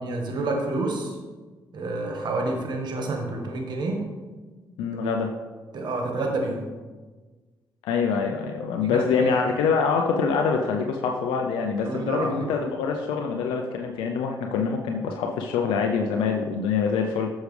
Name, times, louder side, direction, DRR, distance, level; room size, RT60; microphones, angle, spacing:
voice 1, 0.0-1.1 1.7-4.0 4.9-5.1 5.7-6.6 8.8-9.4 11.8-12.5, right 2 dB, 60° right, 2 dB, 1.5 m, -29 dB
voice 2, 4.8-5.3 7.8-17.3, left 5 dB, 85° left, 2 dB, 0.5 m, -25 dB
8.1 x 6.4 x 3.3 m, 1.3 s
supercardioid pair, 55°, 8 cm